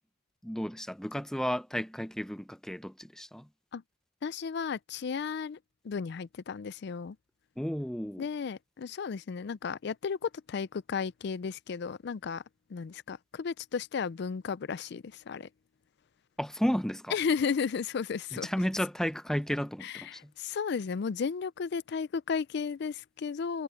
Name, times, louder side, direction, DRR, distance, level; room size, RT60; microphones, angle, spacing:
voice 1, 0.4-3.5 7.6-8.3 16.4-17.1 18.3-20.3, equal, 5° left, 0.6 m, -33 dB
voice 2, 4.2-5.6 5.8-7.2 8.2-12.4 12.7-15.5 17.1-18.5 19.8-23.6, left 6 dB, 60° left, 0.4 m, -34 dB
head